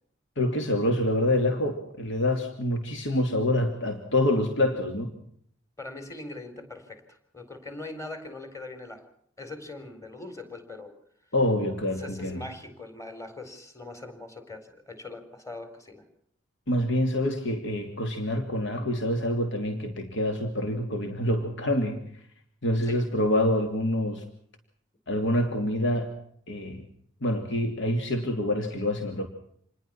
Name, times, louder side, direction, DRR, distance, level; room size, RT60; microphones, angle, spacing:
voice 1, 0.4-5.1 11.3-12.4 16.7-22.0 22.6-24.2 25.1-26.1 26.5-26.8 27.2-29.3, left 1 dB, 65° left, 5 dB, 3.0 m, -26 dB
voice 2, 5.8-9.1 9.4-11.0 12.0-16.0 22.9-23.1, left 2 dB, 15° left, 8 dB, 4.5 m, -41 dB
28.0 x 20.5 x 6.0 m, 0.66 s
head